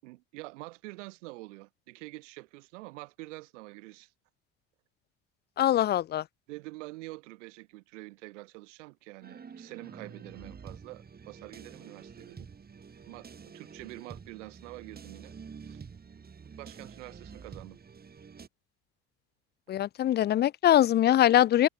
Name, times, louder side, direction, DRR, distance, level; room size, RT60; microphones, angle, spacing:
voice 1, 0.0-4.1 6.5-12.5 13.1-15.3 15.6-15.8 16.6-17.8, right 22 dB, 85° right, 7.1 m, -46 dB
voice 2, 5.6-6.2 19.7-21.7, left 12 dB, 30° left, 0.4 m, -23 dB
sound 1, 9.2-18.5, right 6 dB, 25° right, 2.5 m, -48 dB
supercardioid pair, 85°, 35 cm